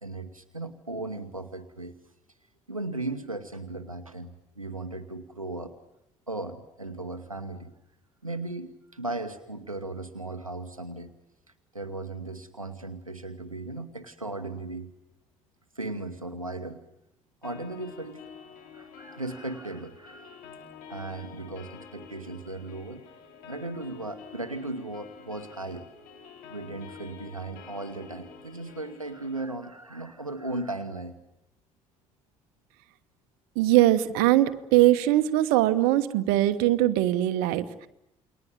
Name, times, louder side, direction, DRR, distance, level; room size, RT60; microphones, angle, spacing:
voice 1, 0.0-1.9 2.7-5.7 6.3-7.7 8.2-11.1 11.7-14.9 15.7-16.8 17.4-18.3 18.7-20.4 20.9-23.0 23.5-25.9 26.5-31.2, right 2 dB, 90° right, 8 dB, 1.0 m, -36 dB
sound 1, 17.4-29.4, left 6 dB, 60° left, 3.8 m, -48 dB
voice 2, 33.5-37.9, right 14 dB, 65° right, 11 dB, 1.2 m, -21 dB
29.5 x 21.5 x 9.3 m, 0.82 s
figure-of-eight pair, 45°, 17 cm